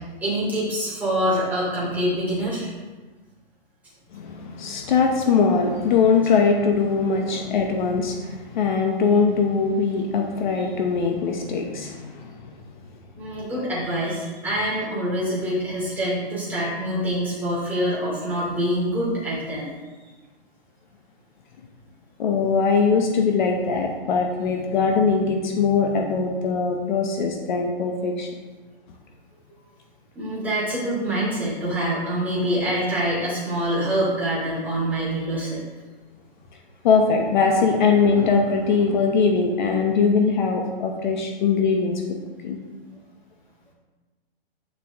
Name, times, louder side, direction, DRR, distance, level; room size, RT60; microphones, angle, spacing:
voice 1, 0.2-2.7 7.1-7.5 10.5-10.6 13.2-19.7 30.1-35.7, equal, 5° right, -9 dB, 2.7 m, -25 dB
voice 2, 4.1-12.3 22.2-28.3 36.8-42.0 42.4-42.6, left 5 dB, 50° left, 2 dB, 1.0 m, -21 dB
9.4 x 6.2 x 3.6 m, 1.3 s
hypercardioid pair, 160°, 30 cm